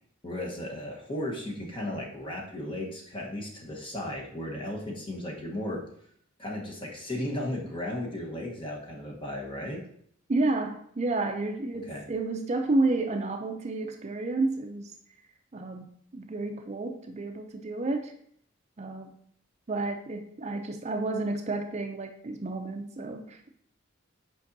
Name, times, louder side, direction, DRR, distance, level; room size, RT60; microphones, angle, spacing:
voice 1, 0.2-5.8 6.4-9.8 11.9-12.0, left 1 dB, 25° left, -1 dB, 1.2 m, -35 dB
voice 2, 10.3-14.9 15.5-15.9 16.1-18.1 18.8-19.1 19.7-23.5, right 2 dB, 35° right, 5 dB, 0.5 m, -30 dB
8.5 x 5.2 x 2.7 m, 0.66 s
head